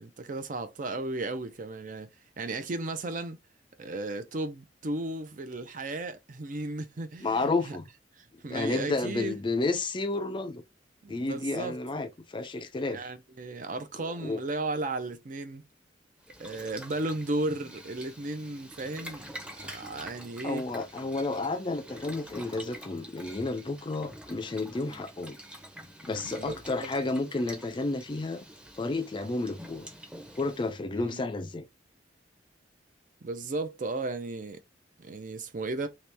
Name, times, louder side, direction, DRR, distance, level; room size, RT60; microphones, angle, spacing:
voice 1, 0.0-2.1 2.4-3.4 3.8-7.8 8.2-9.3 11.0-11.8 12.9-15.6 16.4-19.3 19.6-20.6 26.3-26.9 30.9-31.3 33.2-34.6 35.0-35.9, right 2 dB, 45° right, 0.5 m, -35 dB
voice 2, 7.2-7.9 8.5-10.6 11.1-13.0 14.0-14.4 20.4-25.4 26.0-28.4 28.8-29.9 30.3-31.7, left 3 dB, 25° left, 0.4 m, -31 dB
Boiling, 16.2-30.8, equal, 5° right, 0.7 m, -47 dB
3.0 x 2.9 x 3.3 m
head